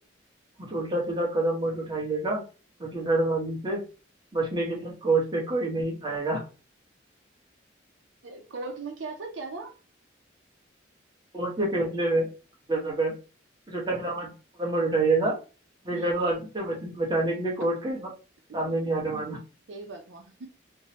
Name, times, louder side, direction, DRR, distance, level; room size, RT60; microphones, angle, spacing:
voice 1, 0.6-2.4 2.8-3.8 4.3-6.4 11.3-12.3 12.7-13.1 13.7-14.3 14.6-15.3 15.8-18.0 18.5-19.4, right 2 dB, 20° right, -3 dB, 0.9 m, -27 dB
voice 2, 8.2-9.7 15.9-16.1 19.1-19.3 19.7-20.5, right 3 dB, 75° right, 3 dB, 0.5 m, -39 dB
3.6 x 2.0 x 2.8 m, 0.34 s
head